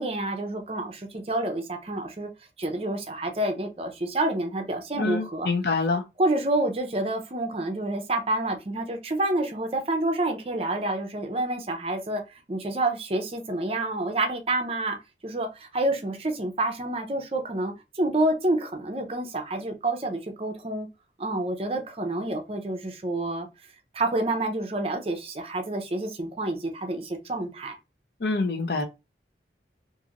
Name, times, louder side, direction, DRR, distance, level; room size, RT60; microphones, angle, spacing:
voice 1, 0.0-2.3 2.6-5.5 6.2-12.2 12.5-15.0 15.2-20.9 21.2-23.5 23.9-27.7, right 2 dB, 35° right, 0.5 m, -28 dB
voice 2, 5.0-6.0 28.2-28.9, left 3 dB, 60° left, 0.5 m, -26 dB
2.9 x 2.6 x 2.4 m
head